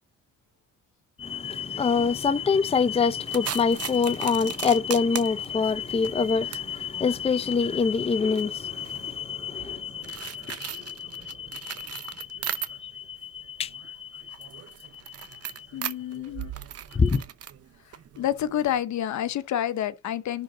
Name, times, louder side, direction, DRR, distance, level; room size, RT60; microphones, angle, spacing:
voice 1, 1.2-15.7 16.9-17.2, left 5 dB, 20° left, 0.5 m, -26 dB
sound 1, 3.3-13.1 13.4-18.8, right 10 dB, 50° right, 0.9 m, -39 dB
voice 2, 15.7-16.5 17.8-20.4, left 11 dB, 70° left, 0.9 m, -29 dB
11.0 x 3.8 x 3.7 m
cardioid pair, 90°, 30 cm